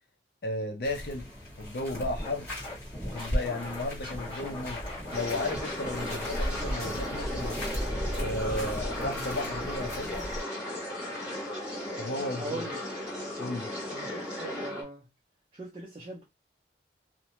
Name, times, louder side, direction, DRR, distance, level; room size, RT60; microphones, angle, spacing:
voice 1, 0.4-1.3 1.6-2.5 3.0-4.8 5.1-7.6 8.2-10.3 12.0-12.6 13.4-13.7, left 2 dB, 60° left, 0.6 m, -34 dB
sound 1, 0.8-10.4, equal, 10° left, 1.5 m, -37 dB
Scratching (performance technique), 1.9-2.3 2.6-5.2 5.5-9.7, left 1 dB, 25° left, 1.3 m, -39 dB
sound 2, 5.1-14.8, left 1 dB, 5° right, 1.2 m, -36 dB
voice 2, 12.4-12.8 13.9-15.1 15.5-16.2, right 2 dB, 30° right, 0.5 m, -40 dB
2.5 x 2.1 x 2.9 m
head